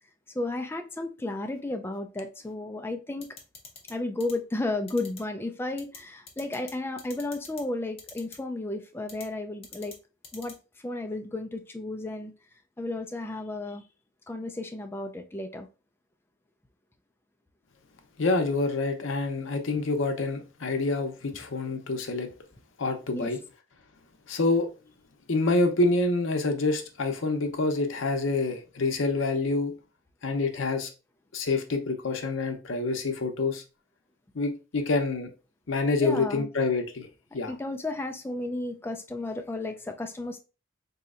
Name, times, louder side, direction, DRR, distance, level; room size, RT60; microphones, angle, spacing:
voice 1, 0.3-3.3 3.9-10.0 10.3-10.6 10.8-12.3 12.8-13.8 14.3-15.7 23.1-23.3 36.0-36.5 37.3-40.4, left 2 dB, 10° left, 0.3 m, -33 dB
sound 1, 3.2-3.9 4.2-4.3 4.9-5.2 5.8-6.0 6.3-6.7 7.0-7.6 8.0-8.4 9.1-9.2 9.6-9.9 10.2-10.5, left 5 dB, 30° left, 0.8 m, -44 dB
voice 2, 18.2-22.3 22.8-23.4 24.3-24.7 25.3-29.7 30.2-30.9 31.3-33.6 34.3-35.3 35.7-37.1 37.3-37.5, left 3 dB, 70° left, 0.6 m, -27 dB
4.1 x 2.7 x 2.4 m
head